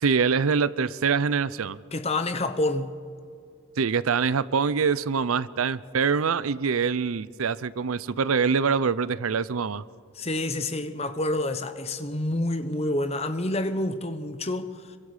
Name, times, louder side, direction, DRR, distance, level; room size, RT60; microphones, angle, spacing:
voice 1, 0.0-1.8 3.8-9.8, right 5 dB, 85° right, 0.6 m, -24 dB
voice 2, 1.9-3.0 10.1-15.0, left 2 dB, 30° left, 1.0 m, -28 dB
26.0 x 23.5 x 5.0 m
head